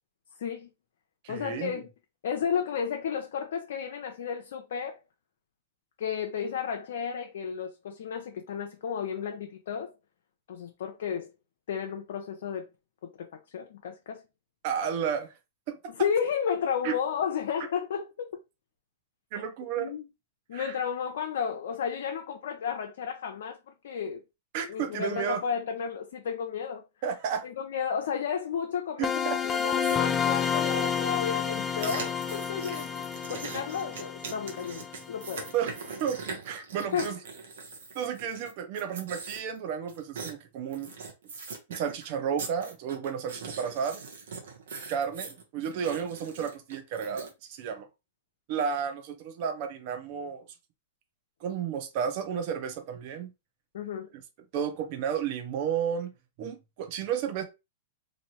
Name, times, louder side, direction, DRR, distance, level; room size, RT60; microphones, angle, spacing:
voice 1, 0.4-0.7 1.3-1.9 2.2-5.0 6.0-9.9 10.5-11.3 11.7-12.7 13.0-14.2 15.9-18.4 19.8-20.0 20.5-24.2 24.7-26.8 27.4-35.5 36.9-37.2 53.7-54.1, left 7 dB, 75° left, 0.5 m, -33 dB
voice 2, 1.2-1.8 14.6-15.3 15.7-15.9 16.8-16.9 19.3-19.9 20.5-20.8 24.5-25.4 27.0-27.4 29.0-29.4 35.5-35.7 36.0-37.2 37.9-40.9 41.7-44.0 44.9-47.9 48.5-50.5 51.4-53.3 54.1-54.2 54.5-56.1 56.4-57.4, right 7 dB, 50° right, 0.7 m, -32 dB
sound 1, 29.0-35.7, left 7 dB, 15° left, 0.3 m, -30 dB
sound 2, 29.8-30.0 31.8-38.5 38.8-39.6 39.9-40.3 40.7-42.0 42.4-47.3, right 5 dB, 75° right, 1.0 m, -41 dB
3.1 x 2.5 x 2.8 m
hypercardioid pair, 135°, 0 cm